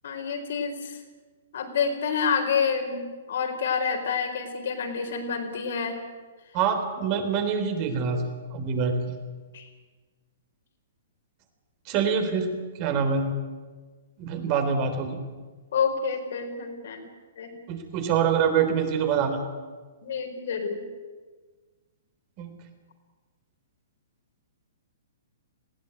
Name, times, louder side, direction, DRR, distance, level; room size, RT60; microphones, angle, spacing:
voice 1, 0.0-1.0 1.5-6.0 9.5-9.7 15.7-17.0 17.4-17.5 20.0-20.8, left 6 dB, 65° left, 4 dB, 4.4 m, -28 dB
voice 2, 6.5-8.2 8.5-8.9 11.9-13.3 14.2-15.2 17.7-19.4 22.4-22.5, right 6 dB, 35° right, 7 dB, 3.7 m, -25 dB
19.5 x 16.5 x 9.4 m, 1.4 s
hypercardioid pair, 140°, 0 cm